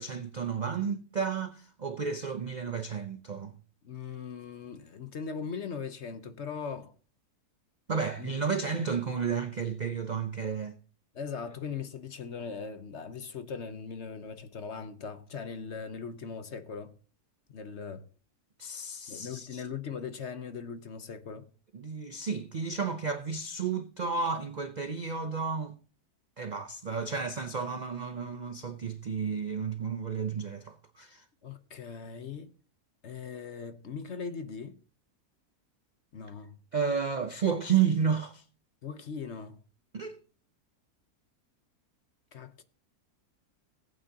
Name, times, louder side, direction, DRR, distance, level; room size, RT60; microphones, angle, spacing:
voice 1, 0.0-3.5 7.9-10.8 18.6-19.6 21.7-25.8 26.4-31.2 36.7-38.4 39.9-40.2, right 6 dB, 60° right, 0.4 m, -32 dB
voice 2, 3.8-6.9 8.2-8.3 11.1-16.9 17.5-18.0 19.1-21.5 31.4-32.5 33.0-34.8 36.1-36.6 38.8-39.6 42.3-42.6, left 6 dB, 50° left, 1.0 m, -39 dB
19.0 x 8.6 x 2.8 m
omnidirectional pair, 1.7 m